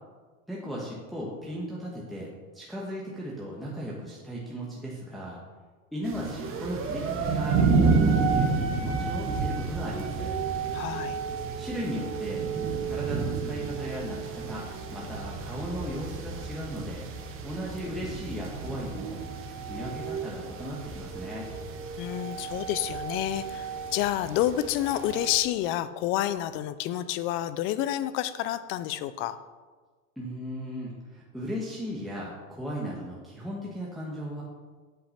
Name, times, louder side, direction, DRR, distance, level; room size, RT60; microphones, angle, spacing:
voice 1, 0.5-5.4 5.9-10.3 11.6-12.4 12.8-17.1 17.4-19.2 19.7-21.5 30.2-34.4, equal, ahead, -5 dB, 1.3 m, -36 dB
sound 1, 6.1-25.4, right 4 dB, 30° right, 1.2 m, -30 dB
voice 2, 10.7-11.2 22.0-29.4, left 12 dB, 30° left, 14 dB, 0.4 m, -29 dB
8.5 x 5.8 x 5.7 m, 1.4 s
hypercardioid pair, 120°, 43 cm